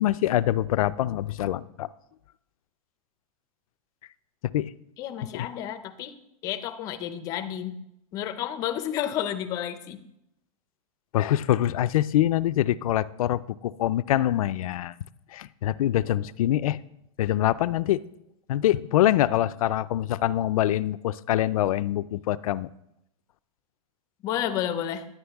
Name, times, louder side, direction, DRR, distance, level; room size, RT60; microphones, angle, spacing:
voice 1, 0.0-1.9 4.5-4.7 5.3-5.5 11.1-14.9 15.3-16.8 17.2-18.0 18.5-22.7, left 13 dB, 75° left, 15 dB, 0.4 m, -24 dB
voice 2, 5.0-6.2 6.4-7.8 8.1-10.0 24.2-25.1, left 10 dB, 20° left, 10 dB, 0.5 m, -31 dB
11.0 x 9.3 x 3.5 m, 0.82 s
supercardioid pair, 175°, 18 cm